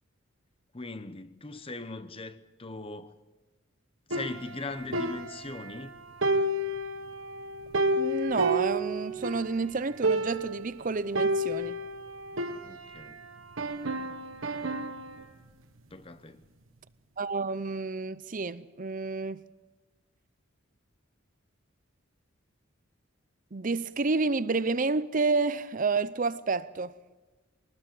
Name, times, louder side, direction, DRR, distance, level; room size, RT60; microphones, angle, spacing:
voice 1, 0.7-3.2 4.1-5.9 12.6-13.2 15.9-16.5, left 3 dB, 25° left, 1.0 m, -40 dB
sound 1, 4.1-5.9 6.2-9.5 9.8-9.9 10.0-10.6 11.1-13.1 13.6-15.2, right 1 dB, 80° right, 1.4 m, -30 dB
voice 2, 8.0-11.8 17.2-19.4 23.5-26.9, right 3 dB, 40° right, 0.6 m, -29 dB
23.0 x 19.5 x 7.7 m
head